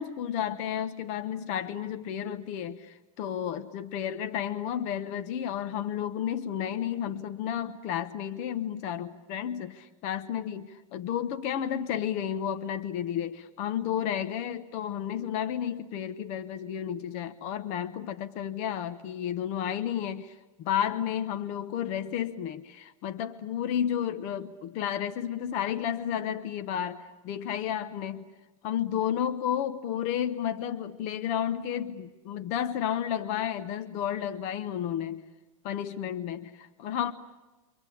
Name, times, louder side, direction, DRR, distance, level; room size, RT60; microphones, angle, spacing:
voice 1, 0.0-28.3 28.6-35.2 35.6-37.1, left 9 dB, 40° left, 10 dB, 1.1 m, -32 dB
28.0 x 25.0 x 8.5 m, 1.1 s
supercardioid pair, 150°, 18 cm